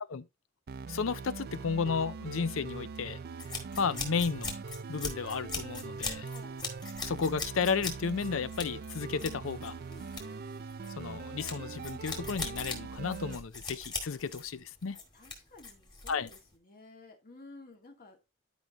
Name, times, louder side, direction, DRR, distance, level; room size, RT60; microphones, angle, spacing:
sound 1, 0.7-13.4, right 4 dB, 50° right, 0.4 m, -42 dB
voice 1, 0.9-3.2 3.8-4.6 4.9-6.3 7.0-9.7 11.0-15.0 16.1-16.3, left 5 dB, 75° left, 0.6 m, -33 dB
sound 2, 3.4-16.5, left 3 dB, 20° left, 2.3 m, -41 dB
voice 2, 6.1-6.6 9.9-10.4 15.1-18.3, left 2 dB, 45° left, 2.1 m, -53 dB
11.5 x 5.3 x 3.0 m
head